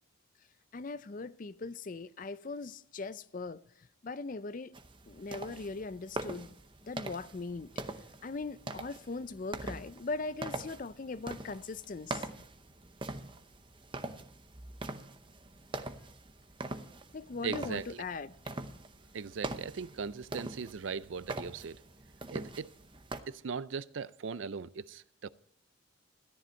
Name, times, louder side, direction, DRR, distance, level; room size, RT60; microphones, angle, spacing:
voice 1, 0.7-3.6 4.0-4.8 5.1-6.6 6.8-7.7 8.2-12.3 17.1-18.3, left 3 dB, 40° left, 0.4 m, -40 dB
sound 1, 4.7-23.2, right 2 dB, 25° right, 0.7 m, -43 dB
voice 2, 17.4-18.0 19.1-21.8 22.3-22.7 23.3-25.3, right 5 dB, 65° right, 0.4 m, -39 dB
13.5 x 10.5 x 4.4 m
head